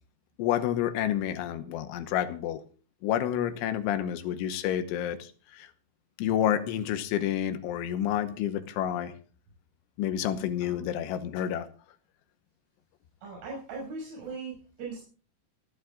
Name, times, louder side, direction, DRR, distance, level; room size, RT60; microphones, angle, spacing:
voice 1, 0.4-2.6 3.0-5.7 6.2-9.1 10.0-11.7, left 10 dB, 80° left, 10 dB, 3.3 m, -29 dB
voice 2, 13.2-15.0, right 4 dB, 85° right, -3 dB, 8.6 m, -39 dB
29.5 x 11.5 x 2.4 m, 0.39 s
omnidirectional pair, 5.7 m